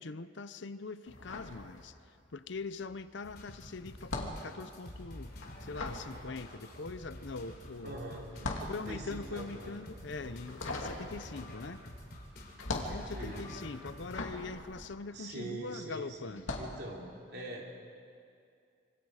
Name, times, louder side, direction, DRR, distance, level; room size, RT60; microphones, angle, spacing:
voice 1, 0.0-5.3 5.6-8.0 8.6-11.8 12.7-16.6, left 3 dB, 70° left, 13 dB, 0.7 m, -42 dB
sound 1, 1.1-2.3 2.6-15.7 16.3-16.8, left 2 dB, 90° left, 2.6 m, -41 dB
sound 2, 3.2-14.2, left 1 dB, 50° left, 3.5 m, -48 dB
voice 2, 7.8-8.3 8.6-9.7 13.1-13.5 15.1-17.7, right 1 dB, 55° right, -1 dB, 3.5 m, -43 dB
sound 3, 9.5-10.1 11.4-12.1 13.4-14.4, left 4 dB, 25° left, 2.5 m, -60 dB
26.0 x 24.5 x 4.9 m, 2.4 s
head